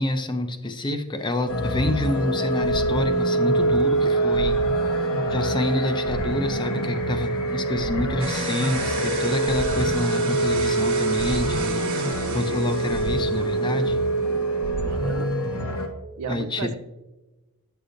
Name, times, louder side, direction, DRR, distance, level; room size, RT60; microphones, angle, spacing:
voice 1, 0.0-4.6 5.3-14.1 16.3-16.7, left 1 dB, 20° left, 8 dB, 0.5 m, -28 dB
sound 1, 1.5-15.9, right 2 dB, 75° left, 1.0 m, -24 dB
sound 2, 8.2-13.7, right 5 dB, 60° right, 1.4 m, -34 dB
voice 2, 14.8-15.3 16.2-16.8, right 6 dB, 85° right, 12 dB, 0.4 m, -33 dB
9.1 x 6.6 x 2.5 m, 1.1 s
head